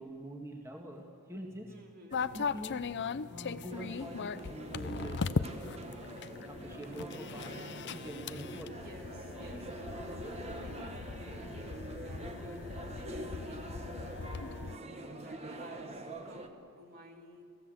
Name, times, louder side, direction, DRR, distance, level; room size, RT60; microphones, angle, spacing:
voice 1, 0.0-1.8 2.3-2.8 3.3-5.8 6.5-7.5 7.9-8.8 9.4-9.7 13.9-14.1, right 1 dB, 15° right, 1 dB, 1.8 m, -45 dB
voice 2, 1.7-2.2 8.6-13.9 14.2-17.4, right 1 dB, 45° right, 2 dB, 2.8 m, -54 dB
sound 1, 2.1-14.8, left 5 dB, 55° left, 0.6 m, -39 dB
sound 2, 3.7-16.5, right 1 dB, 30° right, 1.6 m, -45 dB
30.0 x 17.0 x 7.9 m, 2.4 s
head